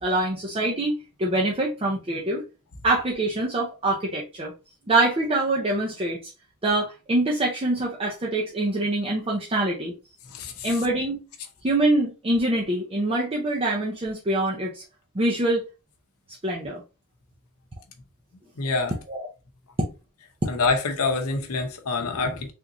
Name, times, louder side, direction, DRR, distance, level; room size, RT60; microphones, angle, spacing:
voice 1, 0.0-0.9 1.2-2.4 2.8-4.5 4.9-6.3 6.6-9.9 10.6-11.2 11.6-14.8 15.1-15.6 16.4-16.8 19.1-19.3, right 2 dB, 25° right, 0.6 m, -24 dB
voice 2, 10.2-10.8 18.6-18.9 20.5-22.5, left 3 dB, 70° left, 0.7 m, -26 dB
3.6 x 2.6 x 2.9 m
head